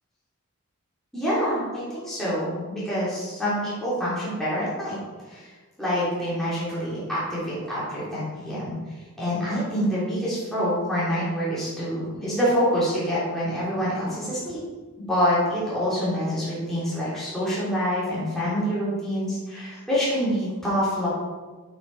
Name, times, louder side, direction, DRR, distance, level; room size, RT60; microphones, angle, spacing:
voice 1, 1.1-5.0 5.3-5.5 5.8-8.7 9.2-14.6 15.0-21.1, equal, ahead, -10 dB, 2.9 m, -26 dB
7.9 x 6.6 x 4.6 m, 1.3 s
head